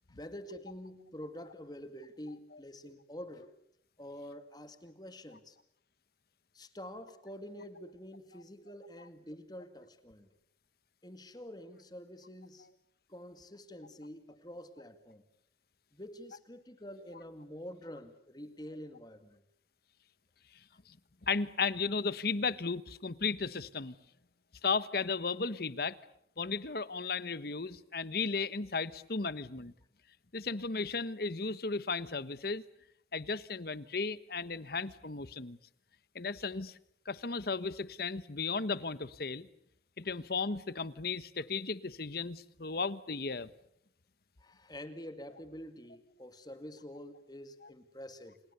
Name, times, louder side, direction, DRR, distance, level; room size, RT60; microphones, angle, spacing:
voice 1, 0.1-3.5 4.0-5.6 6.5-10.3 11.0-12.7 13.1-15.2 15.9-19.4 44.4-48.4, equal, 20° left, 9 dB, 2.2 m, -47 dB
voice 2, 21.2-23.9 24.6-26.0 26.4-29.7 30.3-32.6 33.1-35.6 36.1-36.8 37.0-39.5 40.0-43.5, left 4 dB, 55° left, 16 dB, 1.1 m, -35 dB
28.5 x 28.5 x 6.9 m, 0.70 s
head